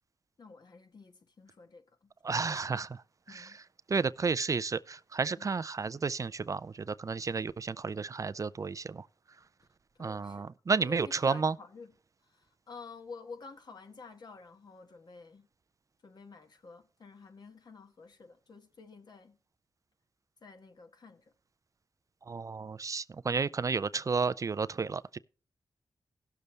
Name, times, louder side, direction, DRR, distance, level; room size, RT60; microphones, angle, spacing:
voice 1, 0.4-2.9 3.3-3.6 5.4-5.6 9.9-10.5 10.8-11.9 12.2-15.5 16.0-19.4 20.4-21.2, left 4 dB, 60° left, 1.4 m, -50 dB
voice 2, 2.2-2.9 3.3-3.5 3.9-6.6 6.9-9.0 10.0-11.5 22.3-25.2, right 4 dB, 45° right, 0.4 m, -31 dB
17.0 x 6.7 x 3.2 m
cardioid pair, 55°, 8 cm